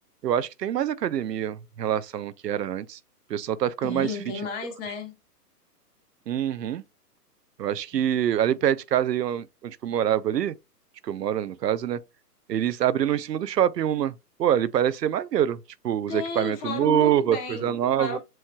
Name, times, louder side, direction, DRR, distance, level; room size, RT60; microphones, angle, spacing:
voice 1, 0.2-3.0 3.3-4.2 6.3-6.8 7.6-10.5 11.0-12.0 12.5-14.1 14.4-15.6 15.8-18.2, right 10 dB, 85° right, 0.6 m, -25 dB
voice 2, 3.8-5.1 7.9-8.0 16.1-17.7 18.0-18.2, left 4 dB, 20° left, 1.0 m, -33 dB
7.5 x 3.1 x 2.2 m
hypercardioid pair, 135°, 48 cm